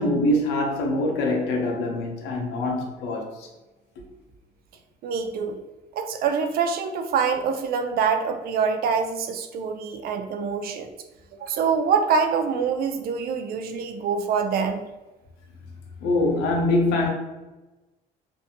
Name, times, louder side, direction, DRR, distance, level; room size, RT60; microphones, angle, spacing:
voice 1, 0.0-3.5 16.0-17.1, left 1 dB, 90° left, 0.7 m, -24 dB
voice 2, 5.0-5.6 6.0-10.9 11.4-14.8, right 6 dB, 60° right, 0.4 m, -25 dB
2.6 x 2.5 x 2.6 m
cardioid pair, 110°, 17 cm